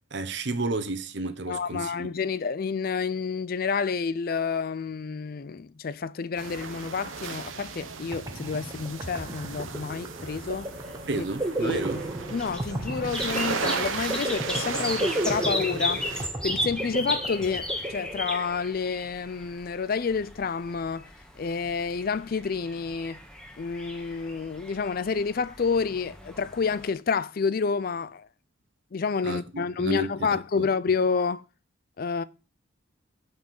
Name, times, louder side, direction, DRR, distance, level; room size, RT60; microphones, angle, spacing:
voice 1, 0.1-2.1 11.1-12.1 29.2-30.3 30.6-30.7, right 2 dB, 60° right, 1.0 m, -31 dB
voice 2, 1.5-10.7 11.2-11.3 11.6-11.8 12.3-16.0 16.4-21.1 21.4-23.2 23.6-28.3 28.9-31.4 32.0-32.2, left 5 dB, 50° left, 0.4 m, -29 dB
sound 1, 6.4-16.3, right 5 dB, 90° right, 1.1 m, -36 dB
sound 2, 7.8-7.9 8.1-18.7, right 1 dB, 20° right, 0.9 m, -34 dB
sound 3, 10.4-26.9, equal, 5° left, 1.6 m, -37 dB
6.2 x 6.2 x 7.1 m
head